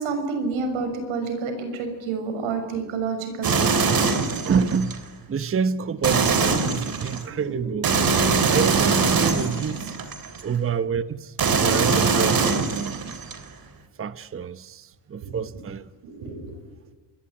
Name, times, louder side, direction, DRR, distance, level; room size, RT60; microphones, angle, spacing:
voice 1, 0.0-4.2 7.4-7.7 15.2-15.4 16.0-16.6, right 4 dB, 90° right, 6.5 m, -29 dB
sound 1, 3.4-5.0 6.0-7.2 7.8-10.4 11.4-13.4, right 4 dB, 45° right, 3.9 m, -22 dB
voice 2, 4.3-5.0 5.3-7.9 8.5-9.9 10.4-13.0 14.0-15.9, right 6 dB, 30° right, 1.0 m, -27 dB
27.0 x 21.5 x 9.9 m
cardioid pair, 100°, 47 cm